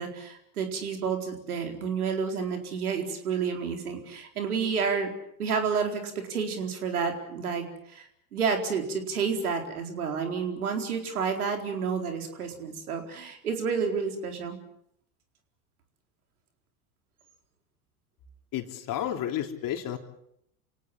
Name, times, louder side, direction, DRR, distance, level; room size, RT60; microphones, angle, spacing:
voice 1, 0.0-5.1 5.4-8.0 8.3-14.6, right 6 dB, 80° right, 4 dB, 4.4 m, -30 dB
voice 2, 18.5-20.0, left 11 dB, 45° left, 4 dB, 3.7 m, -31 dB
28.5 x 18.0 x 7.5 m, 0.72 s
hypercardioid pair, 80°, 43 cm